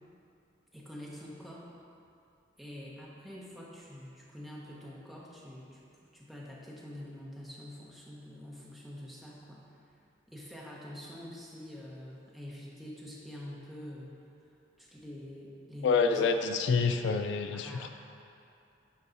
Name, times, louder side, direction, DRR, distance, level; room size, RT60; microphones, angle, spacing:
voice 1, 0.7-1.7 2.6-5.8 6.1-9.6 10.3-14.2 14.8-16.3 17.5-17.9, left 1 dB, ahead, -6 dB, 1.0 m, -46 dB
voice 2, 15.8-17.9, left 5 dB, 75° left, 7 dB, 0.3 m, -27 dB
8.2 x 4.6 x 4.0 m, 2.6 s
head